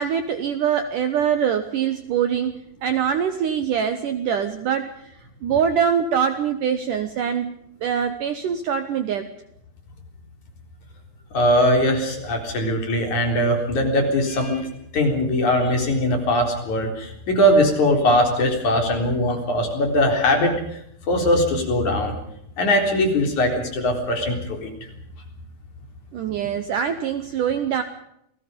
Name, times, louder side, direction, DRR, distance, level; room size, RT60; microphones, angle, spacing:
voice 1, 0.0-9.3 26.1-27.8, right 8 dB, 70° right, 9 dB, 2.1 m, -24 dB
voice 2, 11.3-14.7 14.9-20.6 21.1-22.1 22.6-24.7, left 1 dB, 45° left, 3 dB, 5.0 m, -20 dB
28.5 x 19.5 x 5.2 m, 0.76 s
omnidirectional pair, 4.9 m